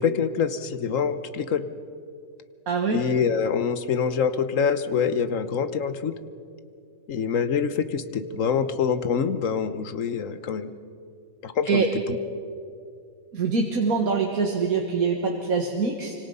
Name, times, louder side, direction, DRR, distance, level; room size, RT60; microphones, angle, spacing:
voice 1, 0.0-1.6 2.9-6.1 7.1-10.7 11.4-12.2, left 6 dB, 65° left, 11 dB, 1.3 m, -25 dB
voice 2, 2.7-3.0 11.7-11.9 13.3-16.1, right 4 dB, 80° right, 1 dB, 2.1 m, -24 dB
25.5 x 25.0 x 5.5 m, 2.4 s
omnidirectional pair, 1.5 m